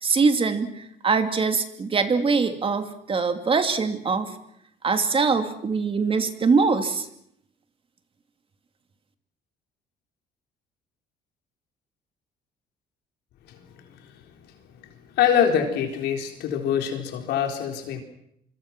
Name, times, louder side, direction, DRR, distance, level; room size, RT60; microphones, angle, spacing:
voice 1, 0.0-4.3 4.8-7.1, right 4 dB, 30° right, 8 dB, 2.5 m, -23 dB
voice 2, 13.5-13.8 15.1-18.0, left 8 dB, 80° left, 4 dB, 4.2 m, -24 dB
25.5 x 25.0 x 6.1 m, 0.72 s
cardioid pair, 110°, 17 cm